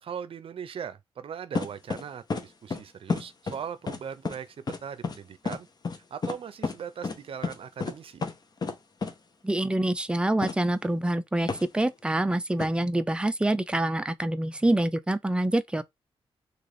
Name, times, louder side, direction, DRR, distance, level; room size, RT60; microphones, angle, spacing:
voice 1, 0.0-5.7 5.9-8.3, right 7 dB, 60° right, 0.6 m, -39 dB
sound 1, 1.6-2.0 2.3-2.4 2.7-2.8 3.1-3.6 3.9-4.0 4.3-4.4 4.7-4.8 5.0-5.2 5.5-5.6 5.8-6.0 6.2-6.4 6.6-6.7 7.0-7.2 7.4-7.5 7.8-7.9 8.2-8.3 8.6-8.8 9.0-9.1 10.4-10.5 11.5-11.6 12.6-12.7, left 4 dB, 40° left, 0.8 m, -30 dB
voice 2, 9.4-15.8, right 1 dB, 10° right, 0.5 m, -26 dB
3.3 x 2.5 x 3.8 m
cardioid pair, 85°, 10 cm